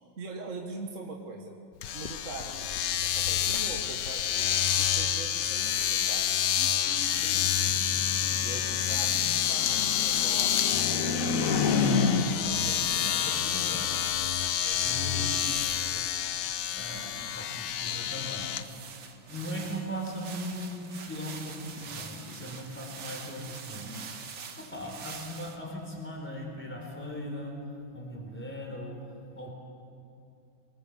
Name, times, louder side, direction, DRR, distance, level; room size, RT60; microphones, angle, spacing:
voice 1, 0.2-1.6 1.9-2.7 3.0-7.8 8.4-11.7 12.8-13.2 16.9-17.1 19.3-19.8 23.7-24.2 24.6-24.8, right 3 dB, 40° right, 2 dB, 1.7 m, -43 dB
Domestic sounds home sounds, 1.8-18.6, left 10 dB, 65° left, 1.4 m, -28 dB
sound 1, 7.1-12.6, left 4 dB, 45° left, 1.6 m, -30 dB
voice 2, 12.2-13.9 14.3-15.5 15.8-16.2 16.5-18.5 19.3-23.9 24.6-27.6 27.9-29.0 29.3-29.5, equal, 5° left, 0 dB, 4.0 m, -39 dB
sound 2, 18.6-25.6, right 6 dB, 70° right, 2.1 m, -44 dB
25.5 x 19.5 x 7.3 m, 2.6 s
omnidirectional pair, 2.2 m